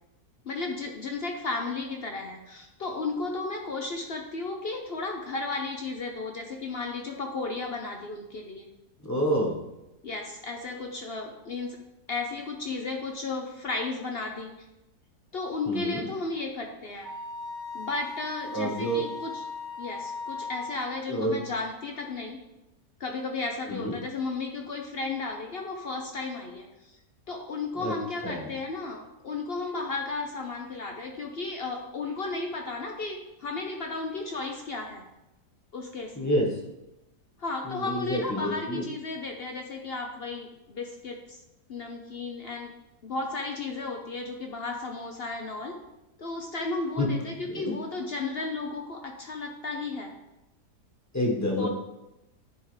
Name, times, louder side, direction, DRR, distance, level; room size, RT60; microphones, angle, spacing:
voice 1, 0.4-8.7 10.0-11.8 12.1-14.5 15.3-17.1 17.7-19.4 19.8-22.4 23.0-26.7 27.3-35.0 35.7-36.1 37.4-41.4 41.7-42.7 43.0-45.8 46.2-50.1 51.6-51.7, left 3 dB, 55° left, 2 dB, 0.7 m, -34 dB
voice 2, 9.0-9.6 15.7-16.0 18.5-19.0 21.1-21.4 23.7-24.0 27.8-27.9 28.2-28.5 36.2-36.5 37.6-38.8 47.0-47.1 47.4-47.7 51.1-51.7, equal, 10° left, -3 dB, 1.2 m, -28 dB
Wind instrument woodwind instrument, 17.0-20.9, left 4 dB, 45° right, 1.0 m, -38 dB
10.0 x 4.8 x 3.3 m, 0.95 s
omnidirectional pair, 1.7 m